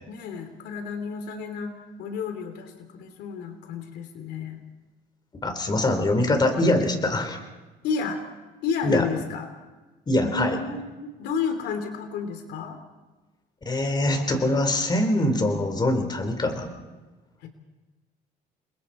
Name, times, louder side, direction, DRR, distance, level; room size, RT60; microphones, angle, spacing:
voice 1, 0.1-4.6 5.6-6.2 7.8-8.2 8.6-9.5 10.2-12.8 17.4-17.5, left 5 dB, 80° left, 7 dB, 2.9 m, -32 dB
voice 2, 5.4-7.4 8.8-9.1 10.1-10.6 13.7-16.7, left 1 dB, 25° left, 6 dB, 4.0 m, -23 dB
29.0 x 23.0 x 4.3 m, 1.2 s
cardioid pair, 110°, 17 cm